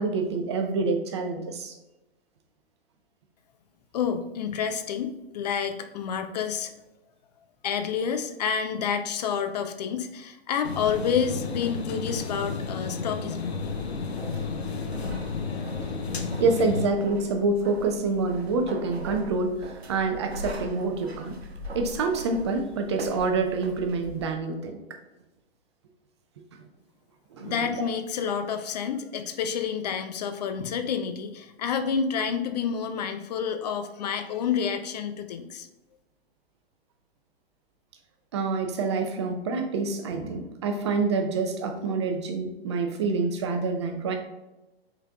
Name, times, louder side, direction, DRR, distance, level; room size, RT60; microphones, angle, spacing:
voice 1, 0.0-1.8 16.4-21.4 21.7-24.8 27.3-27.9 38.3-44.2, right 3 dB, 30° right, 5 dB, 0.4 m, -27 dB
voice 2, 3.9-6.7 7.6-13.6 27.4-35.7, left 7 dB, 40° left, 8 dB, 0.4 m, -29 dB
sound 1, 10.6-16.9, left 4 dB, 85° left, 0.7 m, -32 dB
sound 2, 13.6-24.3, equal, 80° right, 0.7 m, -40 dB
5.4 x 3.8 x 2.3 m, 1.0 s
figure-of-eight pair, 120°, 31 cm